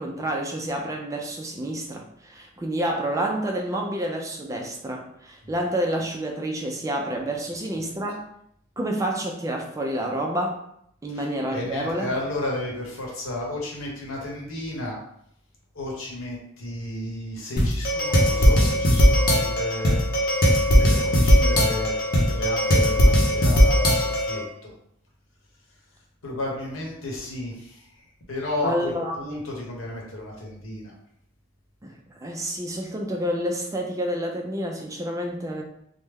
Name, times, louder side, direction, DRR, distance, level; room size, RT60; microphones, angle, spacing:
voice 1, 0.0-8.2 8.8-10.6 11.0-12.1 28.6-29.2 31.8-35.6, right 1 dB, 15° right, 1 dB, 0.3 m, -29 dB
voice 2, 7.4-7.7 11.1-15.0 15.7-20.0 20.7-21.9 22.2-24.7 26.2-28.0 28.3-30.9, left 1 dB, 75° left, -2 dB, 0.9 m, -33 dB
sound 1, 17.6-24.4, equal, 45° left, 0.7 m, -19 dB
3.1 x 2.1 x 3.5 m, 0.71 s
head